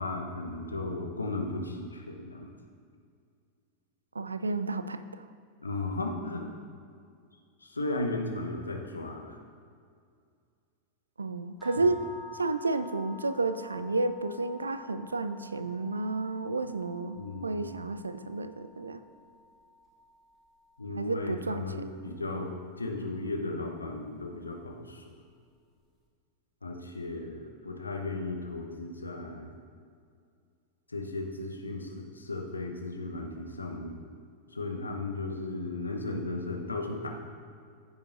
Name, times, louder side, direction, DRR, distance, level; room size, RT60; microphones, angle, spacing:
voice 1, 0.0-2.5 5.6-6.5 7.6-9.4 11.8-11.9 17.2-17.7 20.8-25.0 26.6-29.5 30.9-34.1 34.5-37.1, left 2 dB, 80° left, 2 dB, 1.0 m, -35 dB
voice 2, 4.1-5.2 11.2-19.0 20.9-21.9, right 3 dB, 75° right, 12 dB, 0.4 m, -31 dB
sound 1, 11.6-21.7, left 2 dB, 5° left, 1.8 m, -50 dB
15.0 x 7.1 x 2.6 m, 2.2 s
figure-of-eight pair, 90°, 0 cm